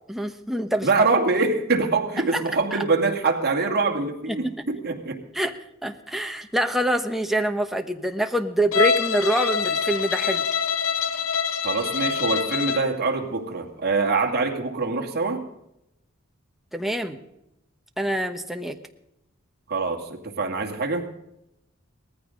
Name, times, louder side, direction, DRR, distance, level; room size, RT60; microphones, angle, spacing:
voice 1, 0.1-0.9 2.3-2.4 2.7-2.8 4.4-4.5 5.3-5.5 5.8-10.4 16.7-17.2 18.0-18.8, right 1 dB, ahead, 5 dB, 1.1 m, -25 dB
voice 2, 0.8-5.2 11.6-15.4 19.7-21.1, right 3 dB, 50° right, 2 dB, 2.3 m, -24 dB
Bowed string instrument, 8.7-12.9, left 6 dB, 80° left, 0.8 m, -25 dB
19.5 x 14.5 x 3.9 m, 0.83 s
head